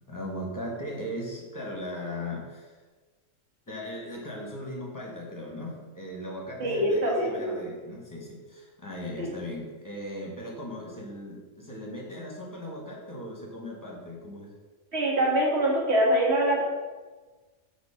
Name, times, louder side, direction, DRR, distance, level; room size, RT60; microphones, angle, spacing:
voice 1, 0.1-2.8 3.7-14.5, left 1 dB, 15° left, -2 dB, 1.4 m, -38 dB
voice 2, 6.6-7.6 9.2-9.3 14.9-16.6, right 1 dB, 55° right, -4 dB, 2.0 m, -24 dB
7.3 x 3.1 x 5.7 m, 1.3 s
omnidirectional pair, 1.4 m